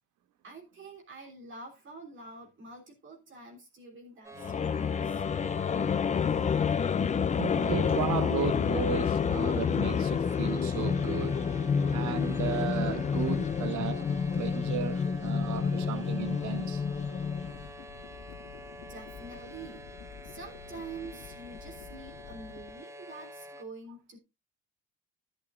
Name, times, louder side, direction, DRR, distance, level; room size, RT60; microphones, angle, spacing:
voice 1, 0.4-5.3 18.9-19.9 20.2-24.2, right 3 dB, 40° right, 3.4 m, -47 dB
sound 1, 4.2-23.6, equal, 10° right, 1.3 m, -48 dB
sound 2, 4.4-17.6, left 6 dB, 25° left, 0.5 m, -29 dB
voice 2, 7.4-11.4 11.9-16.8, right 9 dB, 70° right, 1.4 m, -35 dB
sound 3, 12.8-22.8, left 7 dB, 75° left, 1.8 m, -49 dB
11.5 x 11.0 x 2.5 m
cardioid pair, 125°, 31 cm